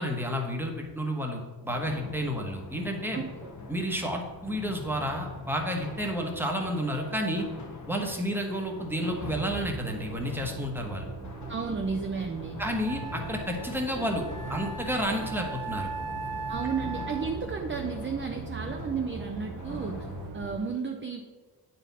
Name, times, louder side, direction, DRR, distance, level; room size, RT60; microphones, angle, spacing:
voice 1, 0.0-3.2 3.7-7.4 7.9-11.1 12.6-15.9, equal, 5° right, 1 dB, 1.2 m, -31 dB
sound 1, 1.7-20.3, left 3 dB, 40° left, 1.1 m, -43 dB
voice 2, 3.1-3.5 11.5-12.6 16.5-20.1 20.3-21.2, right 5 dB, 25° right, 3 dB, 0.6 m, -33 dB
sound 2, 9.3-20.5, right 4 dB, 80° right, 1.0 m, -41 dB
Wind instrument woodwind instrument, 12.2-12.3 12.8-17.5, right 4 dB, 60° right, 1.7 m, -39 dB
8.7 x 4.3 x 4.1 m, 1.3 s
cardioid pair, 85°, 43 cm